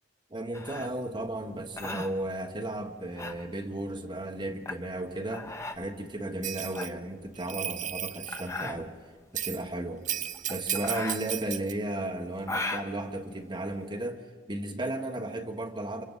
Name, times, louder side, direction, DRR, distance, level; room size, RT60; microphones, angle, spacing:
voice 1, 0.3-9.0 9.3-10.0 10.5-16.0, right 1 dB, 25° right, 3 dB, 1.5 m, -34 dB
sound 1, 0.5-14.1, left 2 dB, 15° left, 0.8 m, -39 dB
Bell, 6.4-6.9 7.4-8.5 9.4-9.6 10.1-11.7, right 11 dB, 45° right, 0.6 m, -34 dB
29.0 x 26.0 x 4.1 m, 1.5 s
head